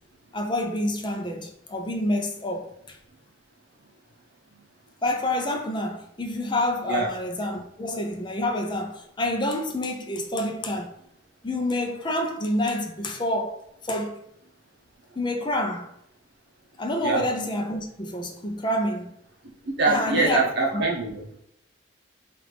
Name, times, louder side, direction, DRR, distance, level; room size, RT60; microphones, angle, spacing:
voice 1, 0.3-3.0 5.0-10.9 11.4-14.2 15.2-15.9 16.8-19.1 19.9-20.8, left 1 dB, 25° left, 0.5 m, -28 dB
voice 2, 19.6-21.4, right 3 dB, 55° right, 0.8 m, -24 dB
4.8 x 2.5 x 3.4 m
head